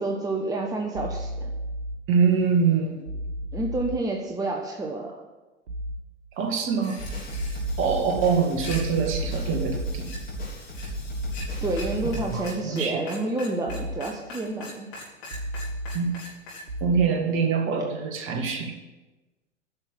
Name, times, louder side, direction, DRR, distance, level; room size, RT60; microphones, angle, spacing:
voice 1, 0.0-1.5 3.5-5.1 11.6-14.9, right 2 dB, 10° right, 1 dB, 1.1 m, -29 dB
sound 1, 0.9-2.0 3.1-4.0 5.7-6.0 7.3-8.0 8.7-10.0 11.1-12.0 13.7-14.0 15.3-16.0 16.7-17.1, right 1 dB, 70° right, 1.8 m, -33 dB
voice 2, 2.1-3.0 6.4-7.0 7.8-10.2 12.0-13.0 15.9-16.1 16.8-18.7, right 5 dB, 35° right, 4 dB, 2.0 m, -24 dB
sound 2, 6.8-7.6 8.4-8.8 10.0-10.2 10.7-10.9 11.2-11.5 11.8-11.9 12.1-12.2 12.4-16.6, left 2 dB, 60° left, 5.0 m, -40 dB
sound 3, 7.0-12.4, equal, 25° left, 4.4 m, -34 dB
10.5 x 6.7 x 8.4 m, 1.1 s
figure-of-eight pair, 100°, 36 cm